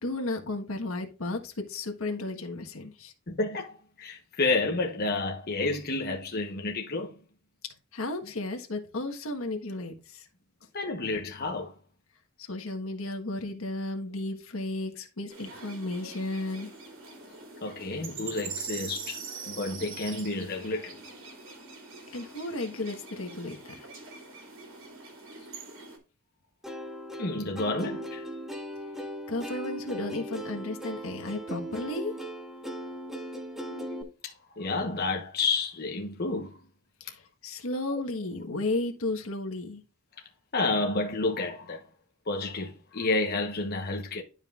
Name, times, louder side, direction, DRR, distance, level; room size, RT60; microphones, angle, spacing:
voice 1, 0.0-3.1 7.9-10.2 12.4-16.7 22.1-23.6 29.3-32.1 37.0-39.8, left 2 dB, 75° left, 1.5 m, -34 dB
voice 2, 3.3-7.1 10.7-11.7 17.6-19.2 19.5-20.9 27.2-28.2 33.7-34.0 34.2-36.6 40.5-41.8 42.3-44.2, left 3 dB, 50° left, 1.1 m, -30 dB
sound 1, 15.3-26.0, right 4 dB, 65° right, 2.8 m, -43 dB
Plucked string instrument, 26.6-34.0, equal, ahead, 1.2 m, -38 dB
11.5 x 5.3 x 2.5 m
head